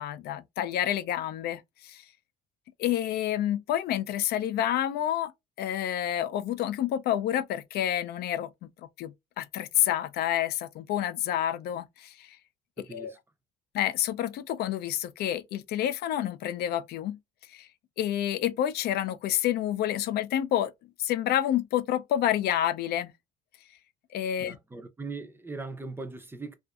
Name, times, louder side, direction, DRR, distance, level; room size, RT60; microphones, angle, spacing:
voice 1, 0.0-2.0 2.8-5.3 5.6-8.5 9.0-12.4 12.9-13.1 13.7-17.2 17.5-17.7 18.0-20.7 21.0-23.1 24.1-24.6, left 11 dB, 70° left, 0.4 m, -29 dB
voice 2, 12.8-13.2 24.4-26.6, right 3 dB, 15° right, 0.5 m, -40 dB
2.5 x 2.5 x 2.2 m
cardioid pair, 110°, 17 cm